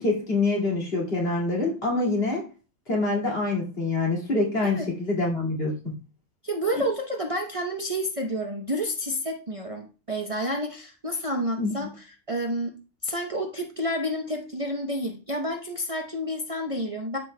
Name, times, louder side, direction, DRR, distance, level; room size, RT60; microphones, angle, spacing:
voice 1, 0.0-2.4 2.9-5.9 11.6-11.9, left 2 dB, 50° left, -3 dB, 2.5 m, -26 dB
voice 2, 6.4-11.9 12.3-12.7 13.0-17.2, equal, 30° right, 1 dB, 0.8 m, -29 dB
12.5 x 5.4 x 2.2 m, 0.34 s
omnidirectional pair, 1.3 m